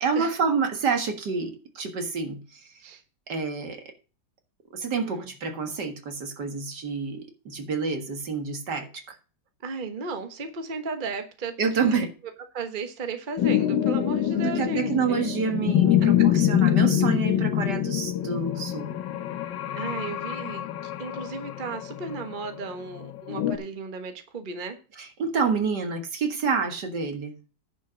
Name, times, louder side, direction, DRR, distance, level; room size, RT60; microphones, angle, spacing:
voice 1, 0.0-2.7 3.3-3.9 4.7-9.2 11.6-12.1 14.4-18.9 25.0-27.3, right 5 dB, 70° right, 5 dB, 2.3 m, -28 dB
voice 2, 9.6-12.1 12.5-15.2 16.0-16.8 19.8-24.8, right 4 dB, 30° right, 7 dB, 1.3 m, -35 dB
sound 1, 13.4-23.6, left 11 dB, 85° left, 1.6 m, -25 dB
10.5 x 5.1 x 6.3 m, 0.35 s
omnidirectional pair, 1.9 m